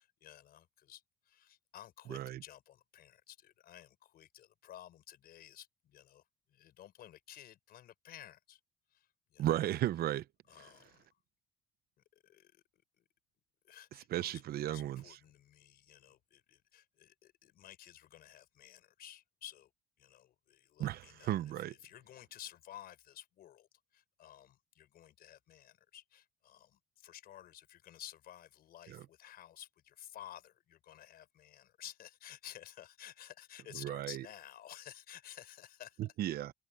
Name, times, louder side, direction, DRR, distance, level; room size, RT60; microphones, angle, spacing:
voice 1, 0.0-8.6 8.9-9.6 10.5-11.1 12.1-12.6 13.0-13.1 13.6-19.7 20.0-36.1, left 11 dB, 65° left, 5.0 m, -54 dB
voice 2, 2.1-2.4 9.4-10.3 14.1-15.2 20.8-21.7 28.9-29.0 33.7-34.2 36.0-36.5, right 13 dB, 65° right, 0.9 m, -35 dB
cardioid pair, 110°, 17 cm